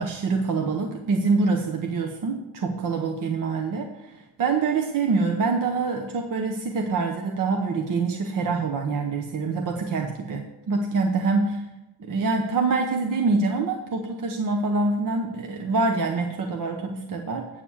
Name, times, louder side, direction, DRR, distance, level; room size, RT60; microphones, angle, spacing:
voice 1, 0.0-11.6 12.0-17.5, right 4 dB, 45° right, 3 dB, 0.8 m, -25 dB
8.8 x 6.7 x 7.0 m, 0.99 s
wide cardioid pair, 175°, 44 cm